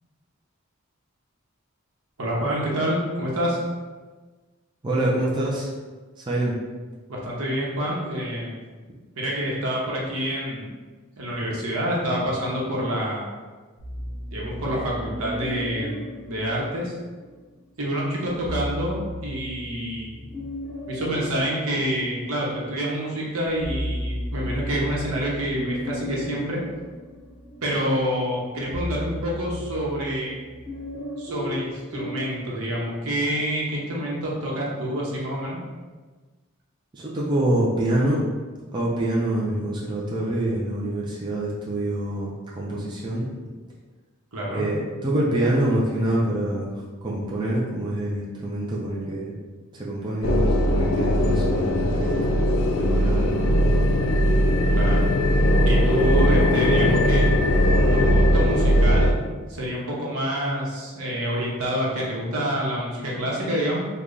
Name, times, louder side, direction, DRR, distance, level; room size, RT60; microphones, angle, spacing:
voice 1, 2.2-3.6 7.1-8.5 9.2-10.7 11.2-13.3 14.3-15.9 16.3-16.9 17.8-20.2 20.9-26.6 27.6-30.4 31.2-35.6 44.3-44.7 54.7-55.1 55.7-57.3 57.9-59.2 59.5-63.8, equal, 85° right, -4 dB, 0.9 m, -27 dB
voice 2, 4.8-5.7 6.2-6.6 36.9-38.3 38.7-43.3 44.5-49.3 49.7-52.4 52.8-53.8, right 1 dB, 20° right, -6 dB, 0.4 m, -26 dB
sound 1, 13.8-17.3 18.2-22.7 23.1-32.4, left 1 dB, 25° left, 0.9 m, -35 dB
sound 2, 50.2-59.1, equal, 65° left, 0.4 m, -19 dB
3.2 x 2.3 x 3.8 m, 1.3 s
head